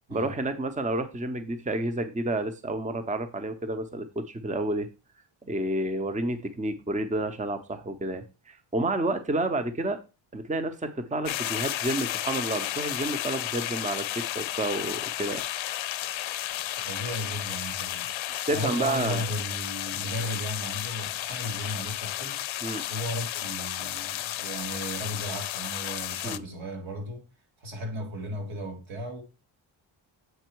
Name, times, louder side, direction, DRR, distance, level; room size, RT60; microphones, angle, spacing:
voice 1, 0.1-4.9 5.5-10.0 10.3-15.4 18.5-19.2 22.6-22.8 26.2-26.4, right 2 dB, 15° right, 0.8 m, -30 dB
sound 1, 11.3-26.4, left 13 dB, 70° left, 0.6 m, -33 dB
voice 2, 16.8-18.1 18.5-22.4 22.9-27.3 27.6-29.2, equal, 70° right, 2.6 m, -35 dB
7.9 x 4.3 x 4.6 m
cardioid pair, 100°, 48 cm